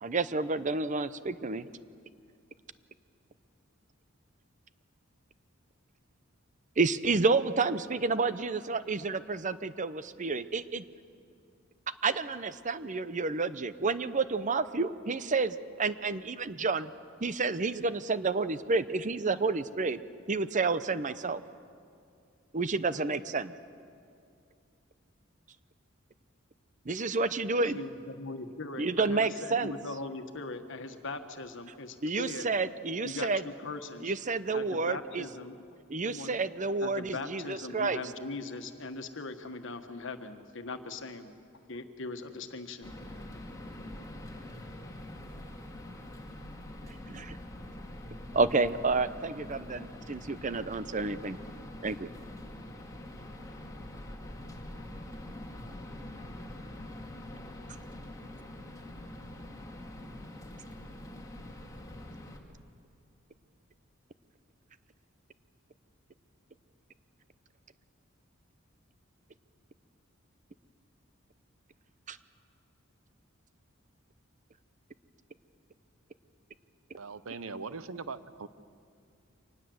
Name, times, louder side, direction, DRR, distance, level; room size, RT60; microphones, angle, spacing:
voice 1, 0.0-1.7 6.8-10.8 12.0-16.9 17.2-20.0 20.3-21.4 22.5-23.5 26.9-27.8 28.8-29.7 32.0-33.4 34.0-35.2 35.9-38.0 47.1-47.4 48.3-51.4 51.8-52.1 72.1-72.2, right 3 dB, 40° right, 14 dB, 0.7 m, -30 dB
voice 2, 27.6-32.5 33.0-34.1 34.5-35.7 36.0-36.4 36.8-41.3 41.7-42.9, left 3 dB, 65° left, 8 dB, 1.5 m, -40 dB
sound 1, 42.8-62.4, left 1 dB, 15° left, 2.2 m, -44 dB
voice 3, 77.0-78.5, right 4 dB, 80° right, 14 dB, 0.9 m, -40 dB
25.0 x 19.5 x 7.9 m, 2.4 s
head